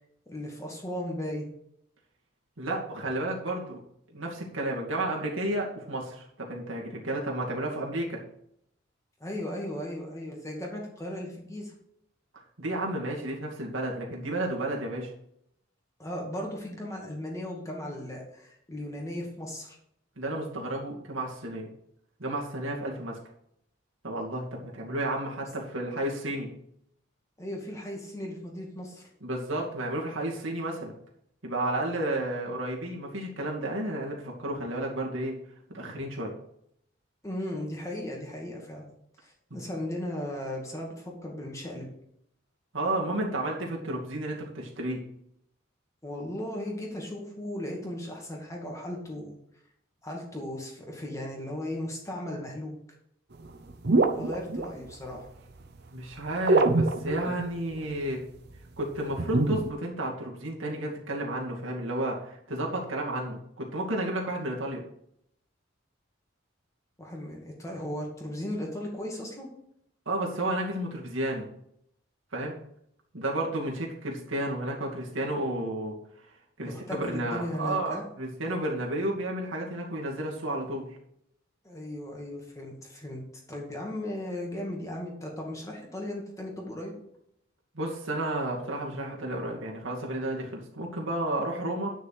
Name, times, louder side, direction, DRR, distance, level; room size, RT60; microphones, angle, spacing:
voice 1, 0.3-1.5 9.2-11.7 16.0-19.8 27.4-29.0 37.2-38.9 39.2-41.9 46.0-49.3 50.0-52.7 54.2-55.3 67.0-69.5 76.6-78.0 81.6-83.2 83.5-86.9, left 1 dB, 15° left, -1 dB, 2.2 m, -36 dB
voice 2, 2.6-3.8 4.1-8.2 12.6-15.1 20.2-21.7 22.2-23.2 24.0-26.5 29.2-30.9 31.4-35.4 35.7-36.3 39.5-39.6 42.7-45.0 55.9-58.2 58.8-64.8 70.1-71.5 72.3-72.6 73.1-76.0 76.6-80.8 87.7-91.9, right 1 dB, 75° right, -1 dB, 2.5 m, -32 dB
sound 1, 53.4-55.1 56.5-57.5 58.0-58.1 59.1-59.7, right 2 dB, 55° right, 0.8 m, -24 dB
9.9 x 6.5 x 4.9 m, 0.74 s
head